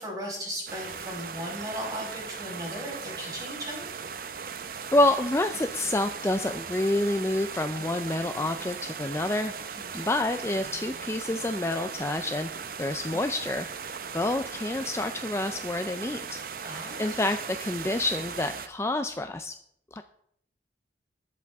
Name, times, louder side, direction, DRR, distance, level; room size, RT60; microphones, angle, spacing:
voice 1, 0.0-3.9 9.7-10.1 16.6-17.2, equal, 20° right, -3 dB, 5.0 m, -37 dB
sound 1, 0.7-18.7, right 6 dB, 55° right, 0.6 m, -38 dB
voice 2, 4.9-9.5 9.9-12.5 12.8-16.4 16.7-19.6 19.9-20.0, left 1 dB, 15° left, 8 dB, 0.4 m, -28 dB
20.5 x 7.3 x 3.5 m, 0.71 s
head